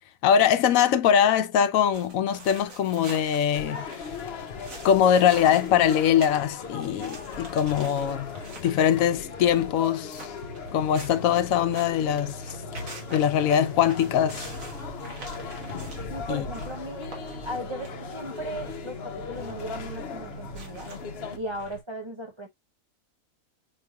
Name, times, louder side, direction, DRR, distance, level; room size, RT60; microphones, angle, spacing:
voice 1, 0.2-3.8 4.8-8.4 8.6-10.3 10.7-12.5 13.1-14.5 16.3-16.5, left 9 dB, 80° left, 1.0 m, -22 dB
sound 1, 1.9-21.8, right 2 dB, 75° right, 2.0 m, -43 dB
sound 2, 3.5-21.4, left 6 dB, 55° left, 0.9 m, -38 dB
voice 2, 16.1-17.1 17.4-20.9 21.3-22.5, right 1 dB, 45° right, 0.3 m, -37 dB
5.9 x 3.0 x 2.2 m
omnidirectional pair, 1.4 m